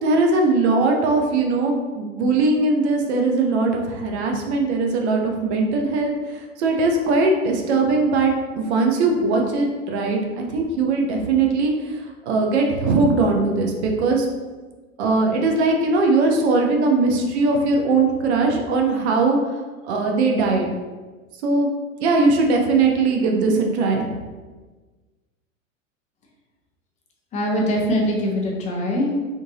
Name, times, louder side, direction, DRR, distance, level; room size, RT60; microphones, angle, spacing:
voice 1, 0.0-14.3 15.0-20.7 21.4-21.7 22.0-24.1, right 3 dB, 55° right, 1 dB, 0.7 m, -20 dB
voice 2, 27.3-29.2, equal, 20° left, -2 dB, 0.5 m, -22 dB
3.7 x 2.6 x 2.7 m, 1.3 s
figure-of-eight pair, 95°, 40 cm